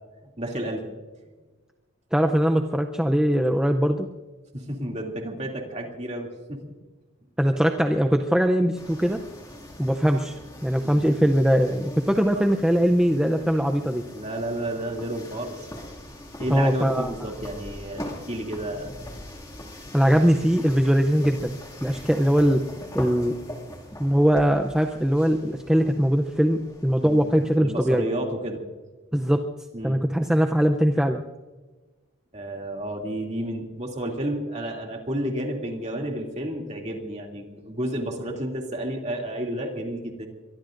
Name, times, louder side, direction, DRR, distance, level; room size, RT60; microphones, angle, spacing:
voice 1, 0.4-0.8 4.5-6.6 10.8-11.1 12.3-12.4 14.1-15.6 16.4-18.9 27.0-28.6 29.7-30.0 32.3-40.3, right 1 dB, 30° right, 1 dB, 2.6 m, -31 dB
voice 2, 2.1-4.1 7.4-9.2 9.8-14.0 16.5-17.1 19.9-22.6 22.9-23.4 24.0-28.1 29.1-29.4 29.8-31.2, equal, 5° right, 4 dB, 0.5 m, -21 dB
sound 1, 8.8-27.6, left 1 dB, 15° left, 2.3 m, -42 dB
23.5 x 23.0 x 2.6 m, 1.3 s
head